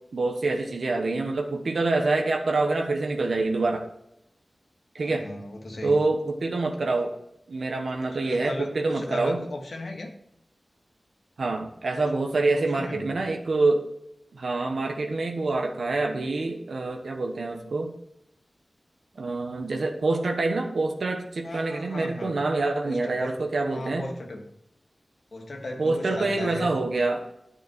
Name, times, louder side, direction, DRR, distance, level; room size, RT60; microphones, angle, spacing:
voice 1, 0.1-3.9 4.9-5.3 5.8-7.1 7.5-9.4 11.4-13.9 14.3-17.9 19.2-24.1 25.8-27.2, right 3 dB, 90° right, 3 dB, 1.2 m, -26 dB
voice 2, 5.0-6.0 8.1-10.1 12.3-13.1 21.4-22.3 22.8-23.4 23.7-24.4 25.3-26.7, left 1 dB, 75° left, 2 dB, 1.7 m, -36 dB
9.6 x 6.2 x 6.1 m, 0.78 s
wide cardioid pair, 90°, 0 cm